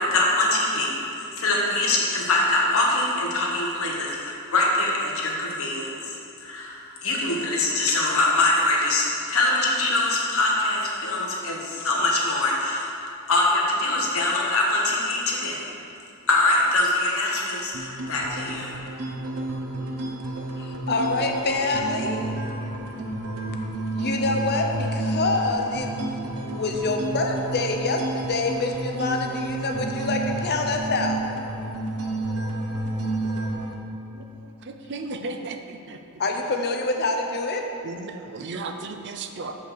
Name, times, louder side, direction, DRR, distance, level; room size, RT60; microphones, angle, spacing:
voice 1, 0.0-12.9 13.3-15.6 16.3-18.7, left 2 dB, 65° left, -2 dB, 1.4 m, -23 dB
sound 1, 17.7-33.7, right 2 dB, 75° right, 0.8 m, -30 dB
voice 2, 20.6-22.3 23.9-25.9 26.5-31.3 36.2-37.7, left 3 dB, 50° left, 3 dB, 0.8 m, -26 dB
voice 3, 34.1-36.0 37.8-39.6, right 3 dB, 55° right, 6 dB, 0.5 m, -35 dB
6.6 x 5.6 x 6.1 m, 2.7 s
head